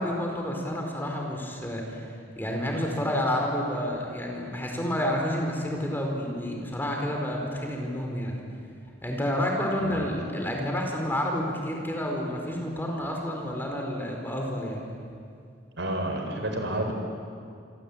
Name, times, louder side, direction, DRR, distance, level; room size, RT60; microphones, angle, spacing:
voice 1, 0.0-2.1 2.3-8.4 9.0-14.9, left 1 dB, 10° left, 0 dB, 4.4 m, -29 dB
voice 2, 9.8-10.1 15.8-16.9, right 1 dB, 70° right, 4 dB, 4.7 m, -30 dB
27.0 x 25.5 x 8.7 m, 2.3 s
head